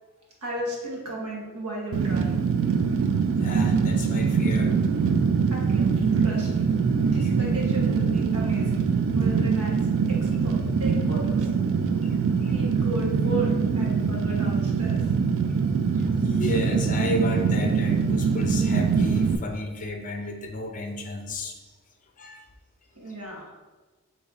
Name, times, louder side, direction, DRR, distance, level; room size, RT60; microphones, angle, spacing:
voice 1, 0.4-2.3 5.5-5.8 6.1-6.6 7.0-8.8 9.1-9.8 10.2-11.5 12.5-15.1 21.6-21.7 22.9-23.5, right 1 dB, 90° right, -3 dB, 1.2 m, -35 dB
Fire, 1.9-19.4, right 5 dB, 60° right, 0.3 m, -23 dB
voice 2, 3.4-4.7 7.2-7.3 12.0-12.1 12.4-12.5 16.0-21.6 22.2-22.4, left 2 dB, 35° left, 3 dB, 0.6 m, -33 dB
4.0 x 3.1 x 3.6 m, 1.3 s
head